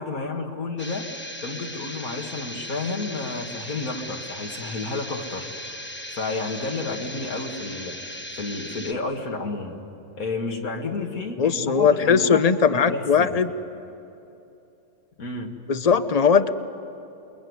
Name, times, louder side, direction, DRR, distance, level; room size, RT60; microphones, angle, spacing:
voice 1, 0.0-5.5 6.1-9.8 10.2-13.4 15.2-15.5, left 3 dB, 75° left, 2 dB, 2.4 m, -31 dB
sound 1, 0.8-8.9, left 1 dB, 10° left, 1.2 m, -37 dB
voice 2, 11.4-13.5 15.7-16.5, left 6 dB, 35° left, 11 dB, 0.7 m, -19 dB
28.5 x 22.0 x 9.6 m, 2.8 s
omnidirectional pair, 1.5 m